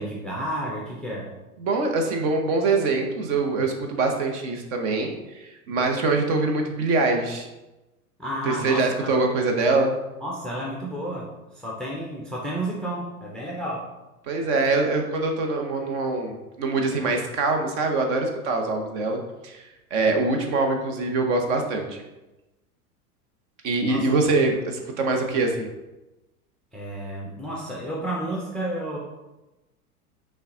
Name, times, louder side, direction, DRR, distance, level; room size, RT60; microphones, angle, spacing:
voice 1, 0.0-1.3 8.2-9.2 10.2-13.9 23.9-24.1 26.7-29.0, right 1 dB, ahead, -4 dB, 0.4 m, -31 dB
voice 2, 1.6-7.5 8.5-9.9 14.2-19.6 19.9-22.0 23.6-25.7, right 3 dB, 50° right, 3 dB, 0.9 m, -24 dB
5.4 x 2.3 x 3.7 m, 1.0 s
figure-of-eight pair, 90°, 45 cm